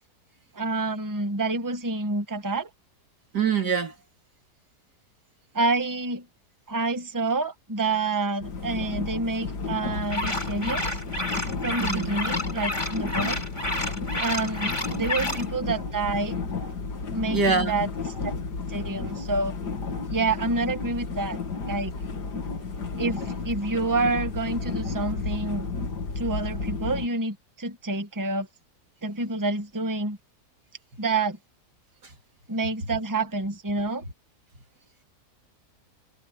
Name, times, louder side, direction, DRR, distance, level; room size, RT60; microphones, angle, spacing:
voice 1, 0.5-2.7 5.5-6.3 6.7-11.0 11.6-13.4 14.2-16.4 17.1-17.9 18.2-18.3 18.7-19.6 20.1-21.4 21.7-21.9 23.0-25.7 26.1-28.5 29.0-30.2 31.0-31.4 32.5-34.0, right 3 dB, 10° right, 1.4 m, -28 dB
voice 2, 3.3-3.9 11.8-12.1 14.9-15.4 17.3-17.7, right 5 dB, 85° right, 3.8 m, -25 dB
sound 1, 8.4-27.1, left 4 dB, 85° left, 2.7 m, -32 dB
sound 2, 10.1-15.4, left 1 dB, 15° left, 3.9 m, -30 dB
omnidirectional pair, 1.7 m